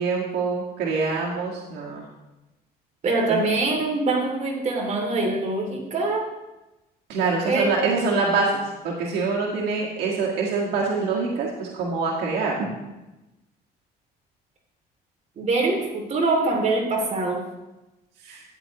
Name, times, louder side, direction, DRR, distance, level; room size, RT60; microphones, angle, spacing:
voice 1, 0.0-2.0 3.3-3.4 7.1-12.7 18.2-18.4, right 4 dB, 75° right, -3 dB, 1.7 m, -25 dB
voice 2, 3.0-6.3 7.4-7.7 15.4-17.4, right 2 dB, 45° right, 0 dB, 2.6 m, -24 dB
13.0 x 9.4 x 3.0 m, 1.0 s
cardioid pair, 110°, 17 cm